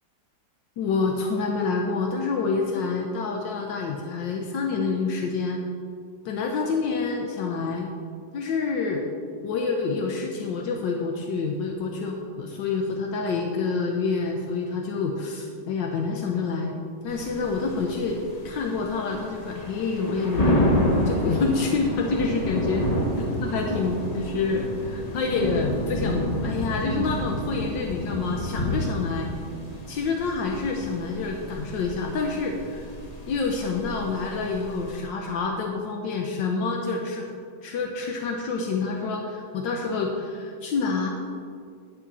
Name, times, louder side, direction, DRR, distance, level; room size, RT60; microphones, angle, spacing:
voice 1, 0.8-5.6 6.2-7.9 8.3-9.0 9.4-16.7 17.0-18.2 18.4-20.7 21.1-22.8 23.2-29.3 29.9-32.8 33.3-37.3 37.6-41.1, left 4 dB, 80° left, 2 dB, 1.4 m, -27 dB
sound 1, 17.1-35.0, left 1 dB, 30° left, 0.7 m, -29 dB
9.6 x 8.3 x 4.1 m, 2.2 s
omnidirectional pair, 2.0 m